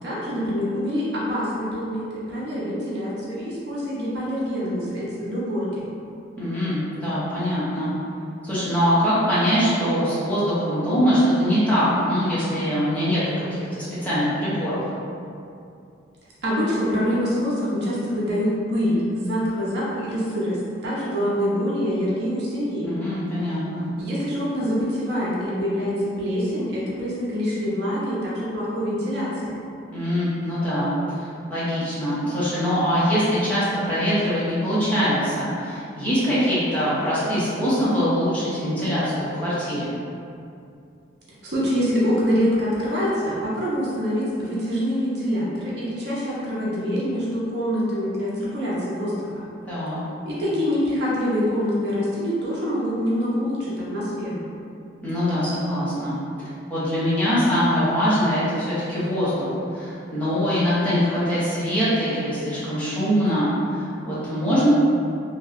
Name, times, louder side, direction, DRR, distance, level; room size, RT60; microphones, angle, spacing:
voice 1, 0.0-5.8 16.4-22.9 24.0-29.5 41.4-49.5 50.2-54.4, equal, 60° right, -7 dB, 0.7 m, -25 dB
voice 2, 6.4-7.9 8.4-14.8 22.9-23.9 29.9-39.9 49.7-50.0 55.0-56.2 56.7-64.7, equal, 10° left, -12 dB, 0.8 m, -23 dB
3.0 x 2.7 x 2.5 m, 2.5 s
head